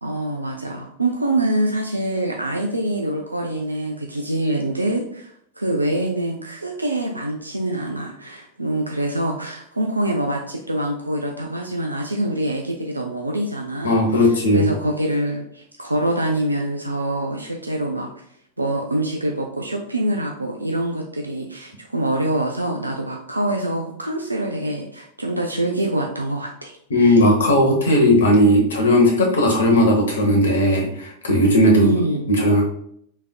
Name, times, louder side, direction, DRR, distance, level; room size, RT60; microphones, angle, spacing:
voice 1, 0.0-18.1 18.6-27.2 31.7-32.3, right 1 dB, 85° right, 1 dB, 0.4 m, -25 dB
voice 2, 13.8-14.7 26.9-31.9 32.3-32.6, left 1 dB, 65° left, 1 dB, 0.9 m, -16 dB
3.4 x 3.3 x 2.3 m, 0.67 s
figure-of-eight pair, 90°, 0 cm